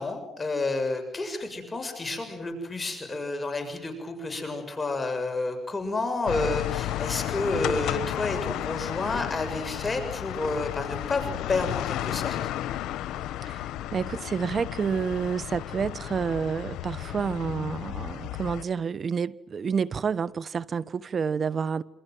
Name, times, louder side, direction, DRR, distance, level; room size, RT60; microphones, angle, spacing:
voice 1, 0.0-12.4, left 3 dB, 25° left, 7.0 m, -30 dB
Plaza Castilla Kio R, 6.3-18.6, left 13 dB, 90° left, 1.2 m, -33 dB
voice 2, 13.9-21.8, right 6 dB, 45° right, 1.1 m, -29 dB
28.0 x 27.0 x 7.8 m
cardioid pair, 90°, 0 cm